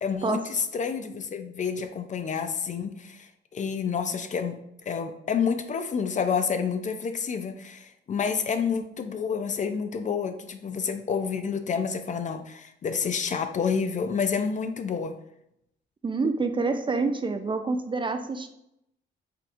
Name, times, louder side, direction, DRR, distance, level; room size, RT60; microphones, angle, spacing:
voice 1, 0.0-4.6 4.9-15.2, left 6 dB, 40° left, 8 dB, 0.4 m, -29 dB
voice 2, 16.0-18.5, right 3 dB, 25° right, 7 dB, 0.4 m, -27 dB
5.7 x 3.5 x 2.5 m, 0.80 s
cardioid pair, 90°, 20 cm